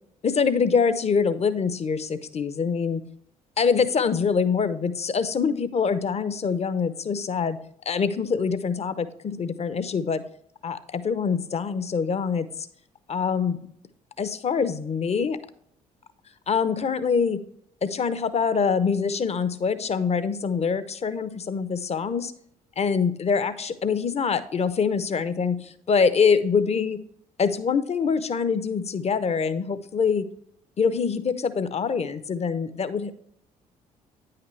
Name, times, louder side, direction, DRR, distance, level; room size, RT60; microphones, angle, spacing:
voice 1, 0.2-3.0 3.6-7.6 7.9-10.2 10.6-12.7 13.1-13.6 14.2-15.4 16.5-17.4 17.8-22.3 22.8-27.0 27.4-30.2 30.8-33.2, left 5 dB, 35° left, 13 dB, 0.8 m, -24 dB
9.4 x 5.8 x 3.2 m, 0.66 s
hypercardioid pair, 50°, 18 cm